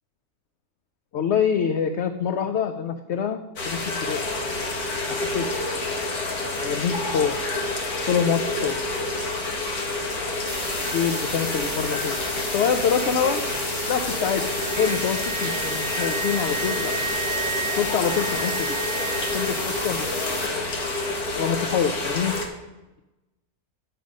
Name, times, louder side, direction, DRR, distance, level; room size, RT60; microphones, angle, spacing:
voice 1, 1.1-3.4 3.7-4.2 5.0-5.7 6.6-7.4 8.1-8.8 10.9-13.4 13.9-14.4 14.8-17.0 17.7-18.5 19.2-20.5 21.3-22.3, left 7 dB, 65° left, 7 dB, 0.7 m, -26 dB
sound 1, 3.6-22.5, left 2 dB, 80° left, 1.8 m, -28 dB
sound 2, 10.5-20.5, equal, 15° left, 1.4 m, -33 dB
Wind instrument woodwind instrument, 13.7-19.7, right 6 dB, 10° right, 0.6 m, -33 dB
9.1 x 6.8 x 5.2 m, 1.0 s
omnidirectional pair, 1.6 m